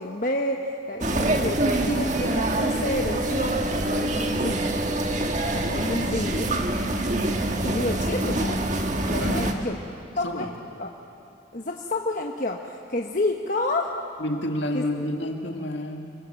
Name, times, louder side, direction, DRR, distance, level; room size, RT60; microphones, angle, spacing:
voice 1, 0.0-3.6 4.1-4.8 5.5-6.5 7.6-8.6 9.1-9.8 10.2-10.5 10.8-10.9 11.5-14.0 14.7-14.8, left 2 dB, 45° left, 1 dB, 1.1 m, -29 dB
sound 1, 1.0-9.5, right 1 dB, 40° right, 1.7 m, -25 dB
voice 2, 9.1-9.8 10.2-10.5 14.2-16.1, left 1 dB, 70° left, 3 dB, 2.4 m, -30 dB
27.5 x 23.5 x 7.7 m, 2.6 s
head